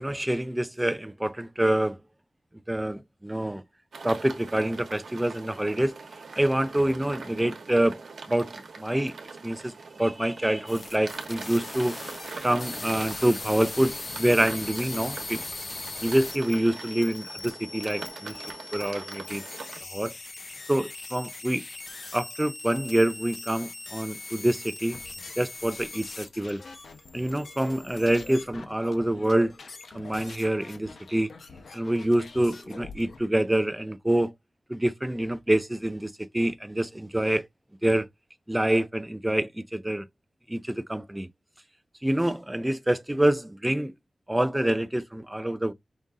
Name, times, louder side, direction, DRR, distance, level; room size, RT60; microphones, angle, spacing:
voice 1, 0.0-2.0 2.7-3.6 4.0-5.9 6.4-8.0 8.3-8.5 8.8-9.1 9.4-9.7 10.0-11.9 12.4-15.4 16.0-18.4 18.7-19.4 19.9-20.1 20.7-21.6 22.1-25.0 25.4-26.6 27.1-29.5 29.9-31.3 31.7-34.3 34.7-37.5 37.8-38.1 38.5-40.1 40.5-41.3 42.0-43.9 44.3-45.7, right 1 dB, 10° right, 0.4 m, -26 dB
sound 1, 3.9-19.8, right 4 dB, 80° right, 1.0 m, -42 dB
sound 2, 10.7-26.5 26.8-28.4, left 3 dB, 45° left, 0.6 m, -40 dB
sound 3, 24.9-33.2, left 4 dB, 70° left, 0.9 m, -46 dB
5.2 x 2.5 x 3.5 m
wide cardioid pair, 100°, 0 cm